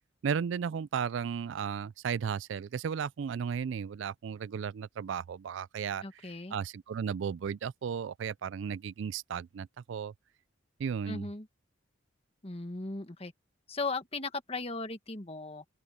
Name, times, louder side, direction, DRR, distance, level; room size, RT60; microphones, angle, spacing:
voice 1, 0.2-10.1 10.8-11.3, right 7 dB, 70° right, 0.3 m, -35 dB
voice 2, 6.0-6.6 11.0-11.5 12.4-13.3 13.7-15.6, left 3 dB, 30° left, 1.5 m, -37 dB
open air
head